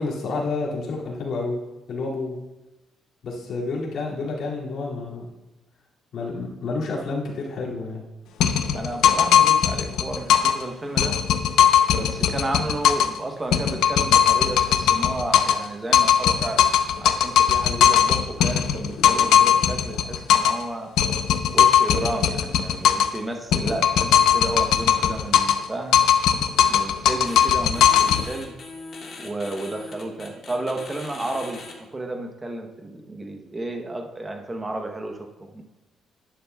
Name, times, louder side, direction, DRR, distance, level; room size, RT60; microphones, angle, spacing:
voice 1, 0.0-1.6 1.9-2.4 3.2-5.3 6.1-8.0 17.6-18.0, left 3 dB, 55° left, -5 dB, 2.3 m, -29 dB
sound 1, 8.4-10.6 11.0-13.2 13.5-15.7 15.9-20.6 21.0-23.2 23.5-25.7 25.9-28.2, left 9 dB, 80° left, 0.6 m, -19 dB
voice 2, 8.7-11.2 11.9-16.7 17.0-20.9 21.5-26.0 26.6-28.5 29.2-35.6, right 2 dB, 15° right, 4 dB, 0.9 m, -32 dB
sound 2, 27.3-27.5 27.7-31.7, left 3 dB, 40° left, 1.7 m, -40 dB
11.5 x 10.0 x 2.3 m, 1.0 s
cardioid pair, 165°, 0 cm